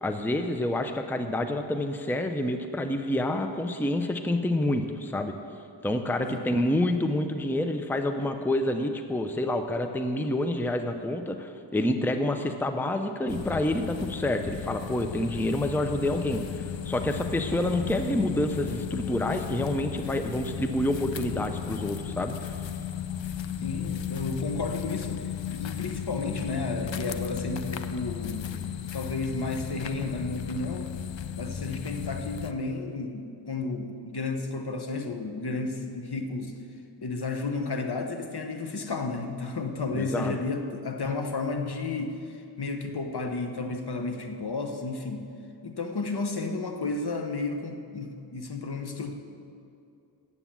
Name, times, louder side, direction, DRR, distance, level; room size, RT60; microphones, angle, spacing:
voice 1, 0.0-5.3 5.8-22.6 39.9-40.4, left 1 dB, 5° left, 7 dB, 0.6 m, -28 dB
sound 1, 13.3-32.5, left 8 dB, 75° left, 0.6 m, -35 dB
voice 2, 23.6-28.5 28.9-30.9 31.4-36.6 37.0-45.3 45.6-49.1, left 3 dB, 55° left, 5 dB, 1.0 m, -32 dB
9.2 x 8.2 x 7.2 m, 2.5 s
wide cardioid pair, 55°, 45 cm